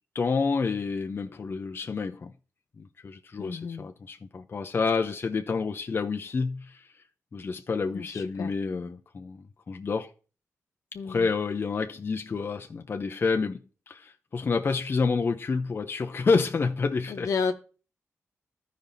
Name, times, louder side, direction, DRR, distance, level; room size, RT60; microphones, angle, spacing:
voice 1, 0.1-2.3 2.8-6.8 7.3-10.1 11.0-13.6 13.9-17.3, left 4 dB, 45° left, 0.6 m, -29 dB
voice 2, 3.4-3.9 7.9-8.0 8.4-8.5 10.9-11.2 17.1-17.5, left 5 dB, 80° left, 1.0 m, -30 dB
15.0 x 5.2 x 2.7 m
wide cardioid pair, 100°, 5 cm